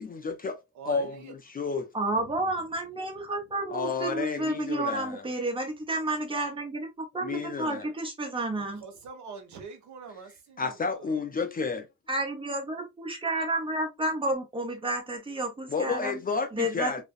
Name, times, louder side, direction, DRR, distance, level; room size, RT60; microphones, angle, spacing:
voice 1, 0.0-0.6 0.9-1.9 3.7-5.2 7.2-7.9 10.6-11.9 15.7-17.0, left 4 dB, 30° left, 0.5 m, -31 dB
voice 2, 0.7-1.3 2.1-2.6 3.2-3.3 8.6-11.3, right 5 dB, 70° right, 0.9 m, -45 dB
voice 3, 1.9-8.8 12.1-16.2 16.5-17.0, right 1 dB, 15° right, 0.9 m, -31 dB
2.4 x 2.1 x 2.4 m
cardioid pair, 90°, 30 cm